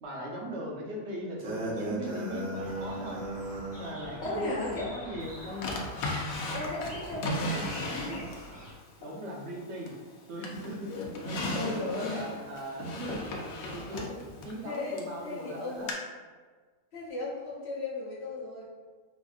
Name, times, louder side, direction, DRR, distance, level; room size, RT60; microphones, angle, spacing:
voice 1, 0.0-5.8 9.0-9.9 10.3-13.2 13.7-14.2 14.4-15.9, equal, 60° right, -2 dB, 0.9 m, -39 dB
sound 1, 1.4-4.0, right 1 dB, 80° right, 1.2 m, -36 dB
sound 2, 2.5-8.7, equal, 5° right, 0.7 m, -45 dB
voice 2, 4.2-4.9 6.5-8.3 11.5-12.3 14.6-15.9 16.9-18.7, left 2 dB, 60° left, -6 dB, 0.9 m, -36 dB
Drawer open or close, 5.6-8.5 9.0-10.1 10.4-15.1 15.9-16.0, left 1 dB, 85° left, 1.0 m, -36 dB
4.3 x 2.5 x 2.3 m, 1.5 s
omnidirectional pair, 1.4 m